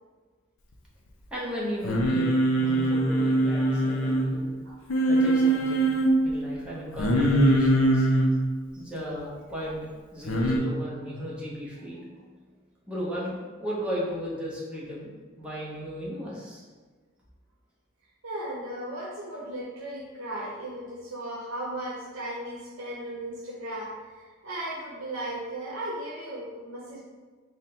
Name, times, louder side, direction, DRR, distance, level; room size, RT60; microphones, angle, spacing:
voice 1, 1.3-2.3 2.6-4.5 5.1-5.9 6.2-8.1 8.7-12.2 12.9-16.6, equal, 5° right, -7 dB, 0.8 m, -35 dB
Singing, 1.8-4.3 4.9-6.1 7.0-8.3 10.3-10.6, right 1 dB, 70° left, 0.5 m, -22 dB
voice 2, 18.2-27.0, right 1 dB, 85° right, -5 dB, 0.7 m, -36 dB
3.5 x 2.1 x 4.3 m, 1.4 s
head